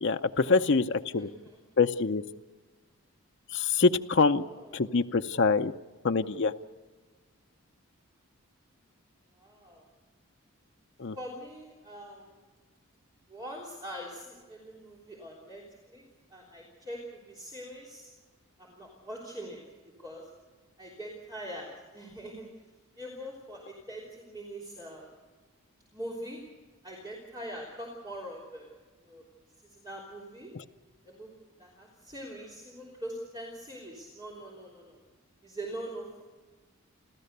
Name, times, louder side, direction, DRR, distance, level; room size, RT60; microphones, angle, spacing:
voice 1, 0.0-1.3 1.8-2.2 3.5-4.4 4.7-5.7 6.0-6.5 11.0-11.2 30.6-30.7, left 4 dB, 55° left, 7 dB, 0.6 m, -25 dB
voice 2, 1.2-1.6 4.1-5.0 9.4-9.8 11.1-12.3 13.3-16.0 16.3-18.1 18.6-19.6 20.0-20.2 20.8-22.4 23.0-25.1 25.9-26.4 26.8-28.7 29.0-29.2 29.6-30.5 31.0-35.0 35.4-36.2, equal, 20° right, -4 dB, 3.4 m, -43 dB
29.5 x 13.5 x 6.7 m, 1.3 s
head